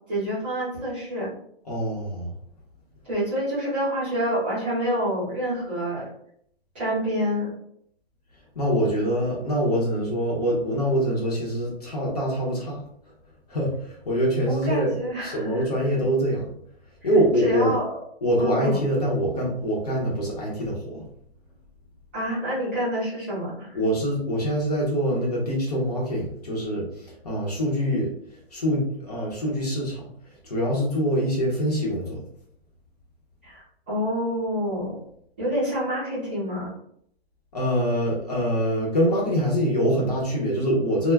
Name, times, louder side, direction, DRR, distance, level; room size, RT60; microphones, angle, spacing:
voice 1, 0.1-1.3 3.1-6.0 6.7-7.5 14.5-15.7 17.4-17.9 18.4-18.8 22.1-23.8 33.4-34.9 35.4-36.7, equal, 10° right, -11 dB, 0.6 m, -27 dB
voice 2, 1.7-2.3 8.5-12.8 13.5-16.5 17.0-17.7 18.2-21.0 23.7-28.1 28.5-30.0 30.4-32.2 37.5-41.1, equal, 40° left, -3 dB, 0.7 m, -24 dB
2.3 x 2.1 x 3.3 m, 0.68 s
hypercardioid pair, 175°, 31 cm